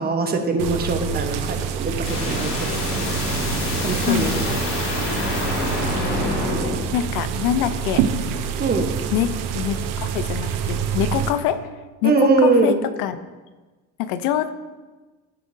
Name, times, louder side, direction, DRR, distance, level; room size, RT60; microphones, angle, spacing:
voice 1, 0.0-2.5 3.8-4.5 8.6-8.9 12.0-12.8, right 3 dB, 30° right, 5 dB, 1.0 m, -21 dB
sound 1, 0.6-11.3, right 7 dB, 80° right, 0.9 m, -26 dB
sound 2, 2.0-6.8, left 2 dB, 55° left, 2.4 m, -26 dB
voice 2, 6.1-6.5 6.9-8.0 9.1-9.3 9.5-11.6 12.0-13.2 14.0-14.5, left 11 dB, 85° left, 12 dB, 0.6 m, -24 dB
15.0 x 5.0 x 2.7 m, 1.2 s
cardioid pair, 125°, 33 cm